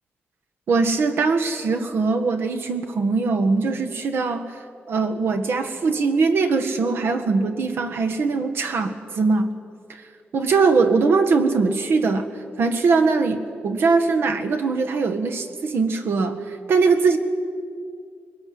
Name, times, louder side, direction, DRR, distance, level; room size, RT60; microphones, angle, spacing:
voice 1, 0.7-4.4 4.9-9.5 10.3-12.3 12.6-16.4 16.7-17.2, right 4 dB, 75° right, 6 dB, 1.8 m, -21 dB
22.0 x 20.0 x 9.7 m, 2.3 s
wide cardioid pair, 140°, 4 cm